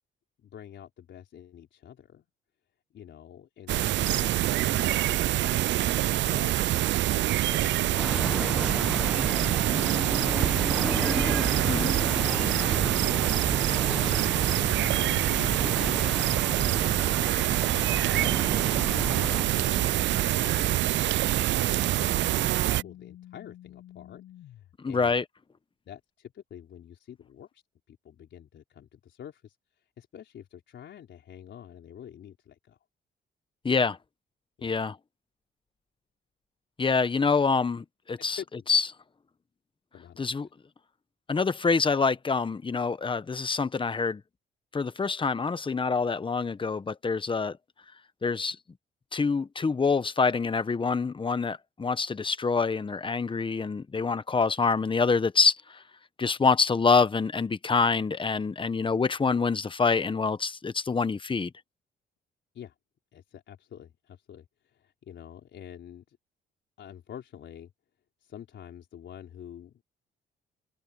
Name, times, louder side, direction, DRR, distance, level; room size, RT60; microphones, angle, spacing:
voice 1, 0.4-2.3 2.9-6.7 7.5-8.2 8.9-10.8 11.6-11.9 12.2-12.6 13.0-14.4 15.0-17.4 18.0-18.6 19.1-25.1 25.9-27.6 27.9-32.8 34.6-34.7 38.2-38.5 39.9-40.3 62.5-62.7 63.1-66.2 66.8-67.7 68.2-69.8, left 9 dB, 65° left, 4.2 m, -47 dB
sound 1, 3.7-22.8, right 14 dB, 65° right, 0.4 m, -25 dB
sound 2, 8.0-19.4, equal, ahead, 1.3 m, -33 dB
sound 3, 15.5-24.7, left 12 dB, 80° left, 7.7 m, -48 dB
voice 2, 24.8-25.2 33.6-34.0 34.6-34.9 36.8-38.4 38.7-38.8 40.2-40.5 41.3-44.2 44.7-47.6 48.2-48.6 49.1-55.8 56.2-61.5, left 4 dB, 25° left, 1.1 m, -26 dB
cardioid pair, 90°, 20 cm